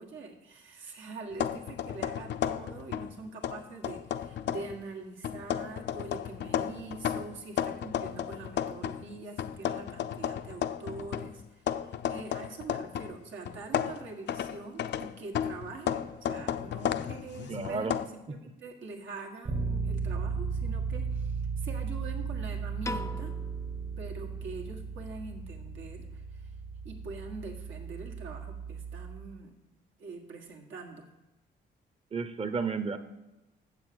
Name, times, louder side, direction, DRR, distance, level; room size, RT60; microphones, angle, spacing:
voice 1, 0.0-23.3 24.0-26.5 26.8-29.5 30.0-31.1, right 3 dB, 75° right, 2 dB, 1.8 m, -44 dB
sound 1, 1.3-3.1 3.4-4.8 5.2-9.0 9.4-13.2 13.5-18.1, left 10 dB, 60° left, 0.5 m, -33 dB
voice 2, 17.5-17.9 32.1-33.0, right 4 dB, 30° right, 10 dB, 0.9 m, -32 dB
Bass guitar, 19.4-29.3, right 5 dB, 50° right, 2.0 m, -35 dB
Piano, 22.8-25.1, left 2 dB, 15° left, 0.4 m, -42 dB
7.2 x 6.7 x 7.8 m, 0.99 s
cardioid pair, 90°, 20 cm